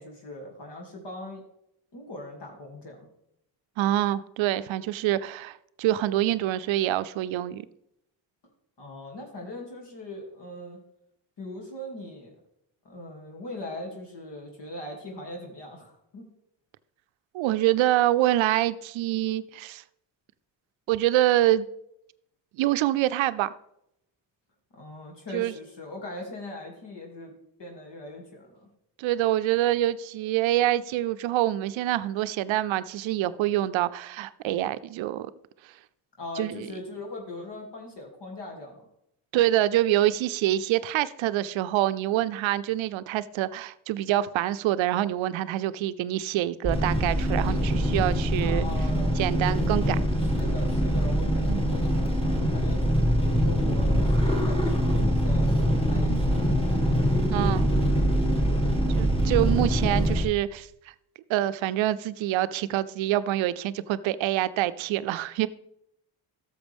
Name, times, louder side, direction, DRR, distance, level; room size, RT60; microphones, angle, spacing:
voice 1, 0.0-1.4 1.9-3.1 8.8-10.8 11.4-12.4 12.8-16.3 24.7-27.3 27.6-28.7 36.2-38.9 48.4-49.2 50.2-56.7, left 1 dB, 55° left, 0 dB, 2.6 m, -41 dB
voice 2, 3.8-7.6 17.3-19.8 20.9-21.7 22.6-23.5 25.3-25.5 29.0-35.3 36.4-36.6 39.3-48.7 49.2-50.0 51.5-51.6 56.1-56.2 57.3-57.7 59.0-60.7 61.3-65.5, right 14 dB, 70° right, 14 dB, 0.6 m, -26 dB
sound 1, 46.6-60.3, equal, 10° left, 1.9 m, -24 dB
13.0 x 6.7 x 3.5 m, 0.78 s
supercardioid pair, 55°, 49 cm